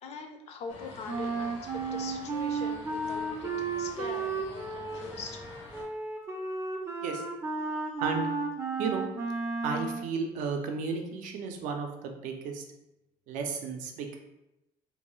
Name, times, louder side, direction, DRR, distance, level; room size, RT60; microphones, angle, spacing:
voice 1, 0.0-5.4, left 5 dB, 55° left, 4 dB, 0.4 m, -42 dB
sound 1, 0.7-5.8, left 2 dB, 85° left, 0.8 m, -48 dB
Wind instrument woodwind instrument, 1.1-10.1, right 4 dB, 20° right, 0.4 m, -33 dB
voice 2, 9.6-12.6 13.3-14.2, right 5 dB, 80° right, 4 dB, 0.5 m, -33 dB
2.6 x 2.2 x 3.0 m, 0.89 s
cardioid pair, 130°, 13 cm